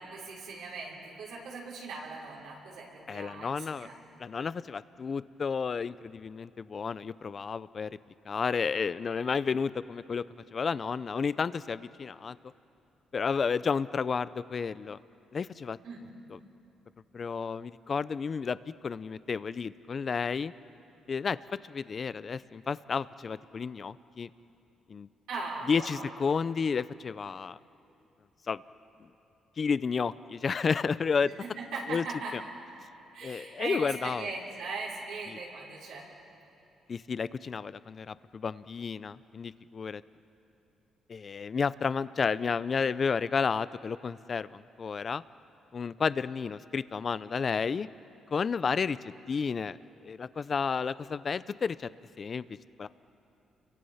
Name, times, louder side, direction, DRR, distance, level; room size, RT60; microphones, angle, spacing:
voice 1, 0.0-4.1 15.8-16.1 25.3-26.1 31.4-32.3 33.1-36.1, right 3 dB, 85° right, -4 dB, 5.9 m, -39 dB
voice 2, 3.1-3.9 4.2-7.9 8.3-10.2 10.5-12.4 13.1-15.0 15.3-15.8 16.3-16.4 17.1-18.6 18.8-20.5 21.1-21.4 21.7-24.3 24.9-25.1 25.7-27.6 28.5-28.6 29.6-31.3 31.9-32.0 32.3-32.4 33.2-34.3 36.9-40.0 41.1-45.2 45.7-47.9 48.3-49.0 49.3-51.9 52.2-52.4 52.8-52.9, left 5 dB, 40° left, 16 dB, 0.6 m, -31 dB
30.0 x 24.0 x 5.7 m, 2.7 s
cardioid pair, 90°, 0 cm